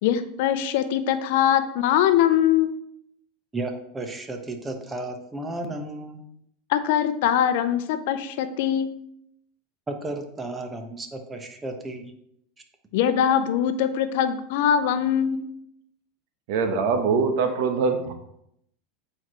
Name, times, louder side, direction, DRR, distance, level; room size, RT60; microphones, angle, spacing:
voice 1, 0.0-2.7 6.7-8.9 12.9-15.4, left 10 dB, 70° left, 11 dB, 0.6 m, -22 dB
voice 2, 3.5-6.2 9.9-12.1, right 2 dB, 20° right, 5 dB, 1.2 m, -33 dB
voice 3, 16.5-18.1, right 5 dB, 65° right, 7 dB, 1.0 m, -23 dB
8.6 x 4.7 x 3.1 m, 0.74 s
hypercardioid pair, 105°, 0 cm